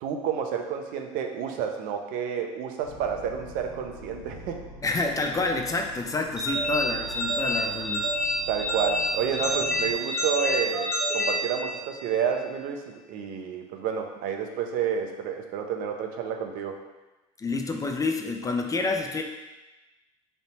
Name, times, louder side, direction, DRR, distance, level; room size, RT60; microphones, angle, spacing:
voice 1, 0.0-4.6 7.6-7.7 8.5-16.8, right 7 dB, 60° right, 3 dB, 0.6 m, -30 dB
sound 1, 2.8-9.9, left 1 dB, 70° left, 1.3 m, -45 dB
voice 2, 4.8-8.1 17.4-19.2, left 3 dB, 20° left, 4 dB, 0.4 m, -28 dB
sound 2, 6.4-12.1, equal, 5° right, 1.2 m, -28 dB
3.3 x 2.7 x 4.0 m, 1.1 s
hypercardioid pair, 80°, 16 cm